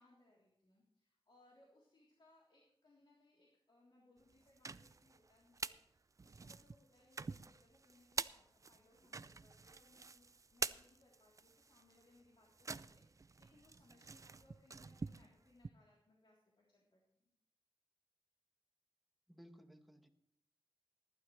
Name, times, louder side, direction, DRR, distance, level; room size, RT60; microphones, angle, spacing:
voice 1, 0.0-17.3, left 2 dB, 65° left, -5 dB, 3.4 m, -70 dB
sound 1, 4.3-5.8 6.2-15.7, right 4 dB, 35° right, 0.4 m, -47 dB
voice 2, 19.3-20.1, equal, ahead, 4 dB, 1.4 m, -60 dB
20.0 x 12.0 x 3.3 m, 0.74 s
wide cardioid pair, 100°, 9 cm